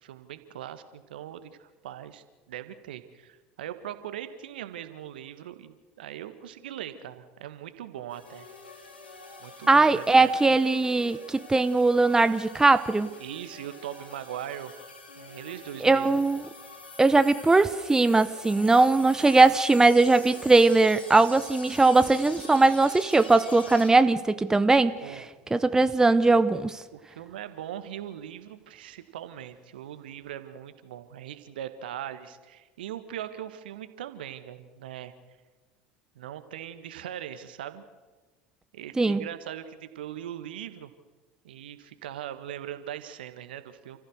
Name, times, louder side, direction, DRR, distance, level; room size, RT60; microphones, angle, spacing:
voice 1, 0.0-8.5 9.4-10.3 13.2-14.7 15.2-16.2 25.0-25.3 26.9-35.1 36.1-37.8 38.7-40.9 41.4-44.0, right 11 dB, 70° right, 11 dB, 1.6 m, -40 dB
sound 1, 8.1-23.9, left 3 dB, 80° left, 3.3 m, -45 dB
voice 2, 9.7-13.1 15.8-16.5 17.0-25.0 25.5-26.8 39.0-39.3, right 3 dB, 10° right, 12 dB, 0.8 m, -20 dB
29.5 x 14.5 x 6.6 m, 1.3 s
figure-of-eight pair, 75°, 5 cm